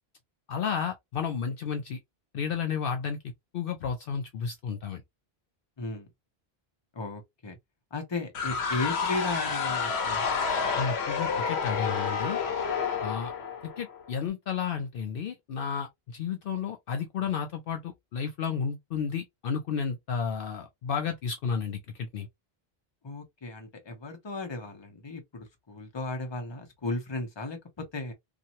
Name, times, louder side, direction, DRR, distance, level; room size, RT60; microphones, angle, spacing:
voice 1, 0.5-2.0 2.3-3.2 3.5-5.0 10.8-12.4 13.0-13.3 13.8-22.3, left 6 dB, 65° left, 0.7 m, -32 dB
voice 2, 5.8-6.1 6.9-7.6 7.9-10.3 23.0-27.6 27.9-28.1, left 2 dB, 30° left, 0.8 m, -35 dB
sound 1, 8.3-14.1, left 5 dB, 85° left, 1.0 m, -29 dB
2.8 x 2.5 x 2.6 m
omnidirectional pair, 1.1 m